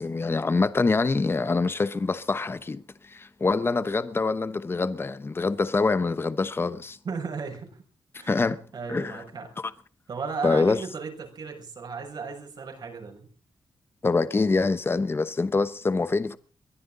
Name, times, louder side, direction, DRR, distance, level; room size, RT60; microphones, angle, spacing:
voice 1, 0.0-7.0 8.3-8.6 8.9-9.2 9.6-9.7 10.4-10.8 14.0-16.4, left 3 dB, 30° left, 1.0 m, -25 dB
voice 2, 7.0-7.7 8.2-9.5 10.1-13.3, right 5 dB, 60° right, 6.5 m, -35 dB
23.0 x 15.5 x 3.9 m
wide cardioid pair, 110°, 8 cm